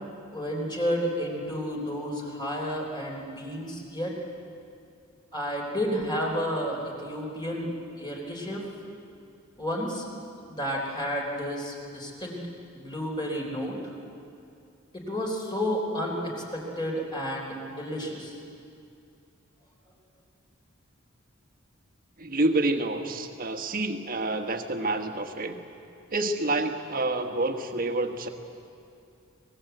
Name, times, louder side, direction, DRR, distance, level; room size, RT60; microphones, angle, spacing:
voice 1, 0.3-4.1 5.3-8.6 9.6-10.1 10.5-12.4 12.7-13.8 14.9-18.3, equal, 20° left, -1 dB, 3.8 m, -31 dB
voice 2, 22.2-25.6 26.1-28.3, right 2 dB, 45° right, 6 dB, 1.5 m, -28 dB
25.5 x 19.5 x 8.0 m, 2.5 s
head